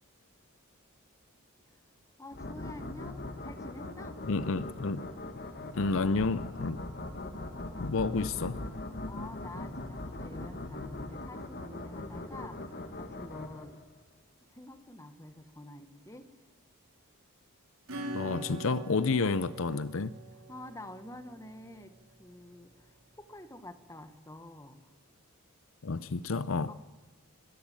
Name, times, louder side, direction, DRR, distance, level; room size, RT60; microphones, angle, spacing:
voice 1, 2.2-4.2 9.1-13.8 14.5-16.3 20.5-21.9 22.2-24.8 26.7-26.8, left 1 dB, 15° left, 9 dB, 1.4 m, -48 dB
sound 1, 2.3-14.0, left 2 dB, 45° left, 1.5 m, -41 dB
voice 2, 4.3-5.1 5.8-6.9 7.8-8.6 18.1-20.2 25.8-26.7, left 4 dB, 60° left, 15 dB, 0.6 m, -30 dB
Acoustic guitar / Strum, 17.9-22.2, right 1 dB, 75° right, 3.7 m, -43 dB
24.0 x 16.0 x 8.8 m, 1.2 s
head